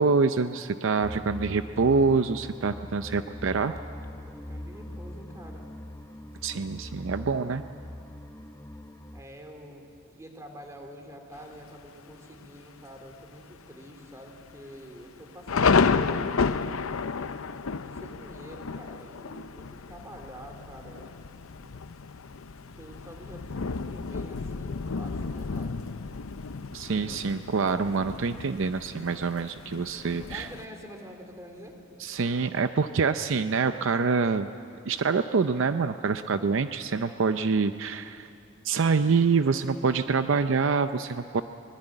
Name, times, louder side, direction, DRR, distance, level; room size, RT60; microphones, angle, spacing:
voice 1, 0.0-3.7 6.4-7.6 26.7-30.5 32.0-34.5 34.9-38.3 38.6-41.4, right 4 dB, 65° right, 10 dB, 0.6 m, -26 dB
sound 1, 1.0-9.2, left 1 dB, 15° left, 0.8 m, -41 dB
voice 2, 3.4-5.7 9.1-9.9 10.1-16.1 17.2-17.3 17.8-21.1 22.8-25.8 30.3-31.8, equal, 15° right, 3 dB, 3.1 m, -47 dB
Thunder, 11.3-11.9 12.4-12.5 12.8-13.2 13.6-13.7 14.4-30.7, left 5 dB, 80° left, 0.7 m, -31 dB
23.0 x 20.5 x 8.9 m, 2.4 s
head